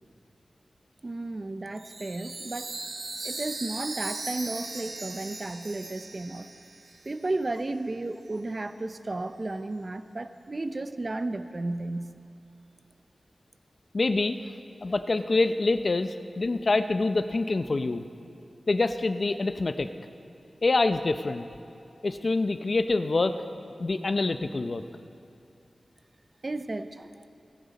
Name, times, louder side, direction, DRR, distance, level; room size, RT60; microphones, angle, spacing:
voice 1, 1.0-2.7 3.2-6.5 7.1-12.2 26.4-27.2, right 2 dB, 40° right, 10 dB, 0.6 m, -33 dB
Chime, 1.8-7.3, right 3 dB, 80° right, 1.7 m, -38 dB
voice 2, 13.9-14.4 14.8-18.0 18.7-19.9 20.6-21.4 22.0-23.4 23.8-24.8, left 3 dB, 50° left, 9 dB, 0.6 m, -26 dB
29.5 x 10.5 x 4.1 m, 2.6 s
wide cardioid pair, 110°, 0 cm